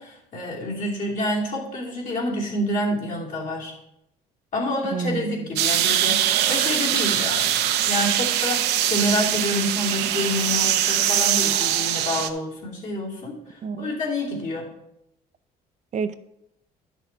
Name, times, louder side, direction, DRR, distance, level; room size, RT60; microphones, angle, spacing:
voice 1, 0.0-3.7 4.5-14.7, left 1 dB, 50° left, -3 dB, 2.9 m, -28 dB
voice 2, 4.9-5.5 13.6-14.0 15.9-16.1, right 5 dB, 45° right, 12 dB, 0.6 m, -29 dB
sound 1, 5.6-12.3, right 11 dB, 85° right, 0.7 m, -22 dB
11.5 x 6.1 x 4.1 m, 0.82 s
cardioid pair, 110°, 17 cm